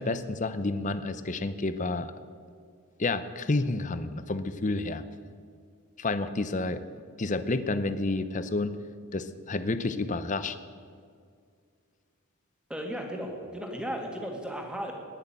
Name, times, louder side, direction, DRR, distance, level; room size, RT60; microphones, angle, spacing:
voice 1, 0.0-2.1 3.0-5.0 6.0-6.8 7.2-8.8 9.1-10.6, left 2 dB, 35° left, 12 dB, 0.6 m, -30 dB
voice 2, 12.7-14.9, equal, 5° right, 1 dB, 1.9 m, -35 dB
19.0 x 6.6 x 9.0 m, 2.1 s
head